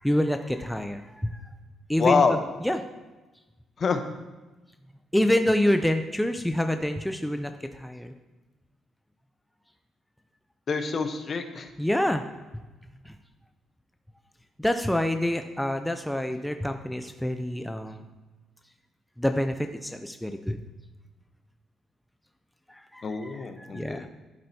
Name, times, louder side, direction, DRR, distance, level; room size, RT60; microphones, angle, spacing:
voice 1, 0.0-1.5 1.9-2.4 2.6-2.8 5.1-8.1 11.8-12.2 13.1-13.2 14.6-18.1 19.2-20.6 22.7-24.1, left 1 dB, 5° left, 7 dB, 0.5 m, -27 dB
voice 2, 2.0-2.4 3.8-4.0 10.7-11.7 23.0-24.1, left 5 dB, 45° left, 7 dB, 0.8 m, -26 dB
11.0 x 8.3 x 2.8 m, 1.1 s
cardioid pair, 90°, 0 cm